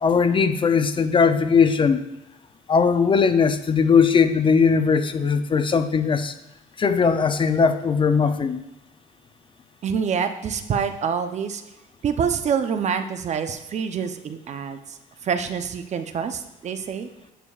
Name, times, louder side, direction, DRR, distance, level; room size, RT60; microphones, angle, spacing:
voice 1, 0.0-2.0 2.7-6.3 6.8-8.6, left 5 dB, 30° left, 10 dB, 0.5 m, -19 dB
voice 2, 9.8-11.6 12.0-15.0 15.2-17.1, right 7 dB, 45° right, 9 dB, 0.6 m, -26 dB
10.0 x 6.4 x 2.4 m, 1.0 s
cardioid pair, 110°, 17 cm